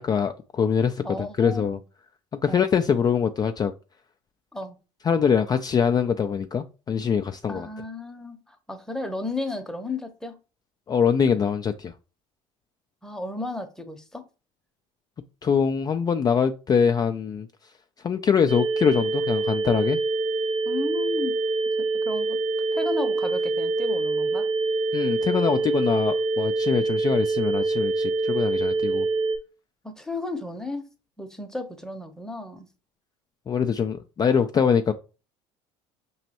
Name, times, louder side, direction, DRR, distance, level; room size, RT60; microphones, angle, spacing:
voice 1, 0.0-1.0 1.4-1.8 2.4-3.7 5.0-7.7 10.9-11.9 15.4-17.5 18.0-20.0 24.9-29.1 33.5-34.9, left 7 dB, 30° left, 0.4 m, -23 dB
voice 2, 1.0-1.8 2.5-2.6 4.5-4.8 7.5-10.4 13.0-14.2 20.7-21.4 21.8-22.4 22.7-24.5 29.8-30.9 31.2-32.7, left 2 dB, 5° left, 0.8 m, -33 dB
sound 1, 18.5-29.4, right 3 dB, 35° right, 0.6 m, -25 dB
5.1 x 3.1 x 2.9 m
supercardioid pair, 90°, 14 cm